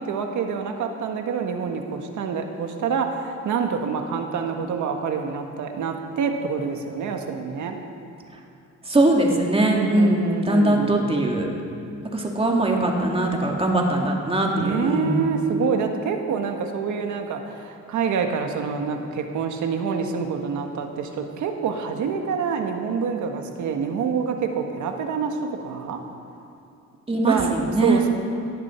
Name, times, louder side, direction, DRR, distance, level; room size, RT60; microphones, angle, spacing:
voice 1, 0.0-7.8 9.7-11.1 14.6-26.0 27.3-27.5 27.8-28.1, right 6 dB, 75° right, 4 dB, 1.6 m, -26 dB
voice 2, 8.9-11.5 12.1-15.3 27.1-28.1, right 1 dB, 20° right, 0 dB, 2.5 m, -21 dB
18.5 x 12.5 x 4.5 m, 2.6 s
cardioid pair, 90°, 30 cm